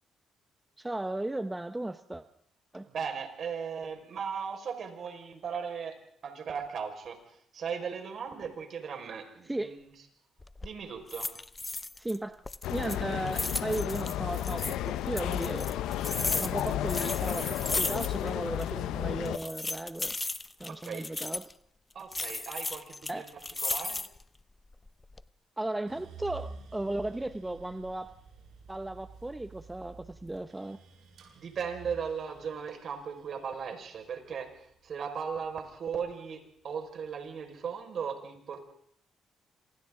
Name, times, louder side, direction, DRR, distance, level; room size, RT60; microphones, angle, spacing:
voice 1, 0.8-2.2 2.7-2.9 9.4-9.8 12.0-12.4 12.7-15.7 16.3-20.1 20.6-21.5 23.1-23.3 25.6-28.1 28.7-30.8, right 1 dB, 10° right, 9 dB, 0.9 m, -35 dB
voice 2, 2.9-6.0 6.2-7.2 7.5-9.8 10.6-11.3 20.7-21.1 21.9-23.3 23.6-24.0 31.4-34.5 34.8-38.6, right 6 dB, 60° right, 4 dB, 5.3 m, -37 dB
sound 1, 10.4-10.7 11.1-12.2 12.4-14.8 15.2-18.3 18.6-18.7 19.2-21.5 22.1-24.2 24.7-25.2, left 2 dB, 20° left, 0.7 m, -35 dB
sound 2, 12.6-19.4, left 12 dB, 90° left, 0.9 m, -33 dB
sound 3, 25.9-36.1 36.5-37.3, right 5 dB, 75° right, 7.9 m, -50 dB
27.0 x 26.0 x 3.9 m, 0.69 s
cardioid pair, 90°, 0 cm